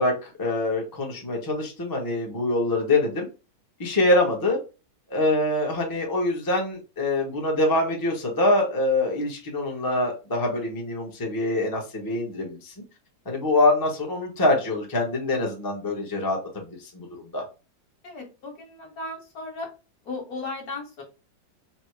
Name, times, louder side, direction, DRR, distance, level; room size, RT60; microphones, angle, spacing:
voice 1, 0.0-3.3 3.8-4.6 5.1-12.7 13.3-17.4, left 2 dB, 25° left, -1 dB, 0.4 m, -24 dB
voice 2, 18.0-19.7 20.1-21.0, left 2 dB, 55° left, 1 dB, 1.6 m, -36 dB
4.3 x 2.1 x 4.4 m, 0.30 s
omnidirectional pair, 2.1 m